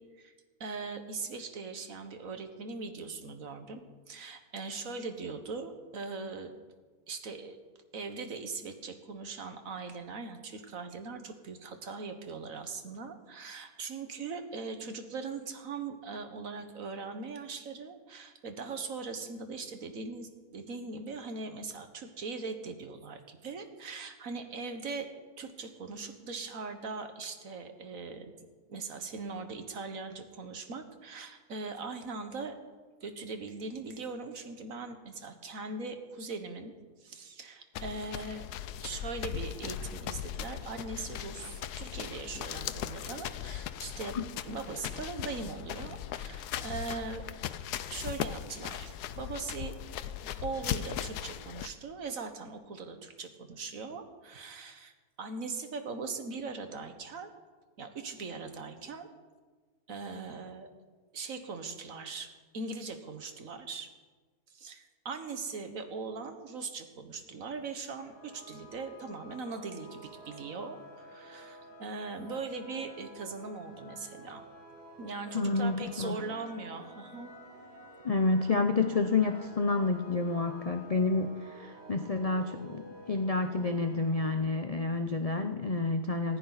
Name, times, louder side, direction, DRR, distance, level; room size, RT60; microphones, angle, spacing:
voice 1, 0.6-6.5 7.1-7.6 7.9-25.1 25.4-28.3 28.7-32.6 33.0-36.7 37.0-38.5 38.8-44.1 44.5-47.3 47.9-49.7 50.4-54.9 55.2-57.3 57.8-59.1 59.9-60.7 61.1-63.9 64.5-74.4 75.0-77.3, right 4 dB, 60° right, 7 dB, 1.7 m, -40 dB
sound 1, 37.8-51.7, left 10 dB, 85° left, 1.2 m, -38 dB
sound 2, 67.3-84.4, right 1 dB, 85° right, 4.3 m, -51 dB
voice 2, 75.3-76.2 78.0-86.4, left 3 dB, 60° left, 7 dB, 0.4 m, -29 dB
18.5 x 15.5 x 4.1 m, 1.4 s
omnidirectional pair, 1.7 m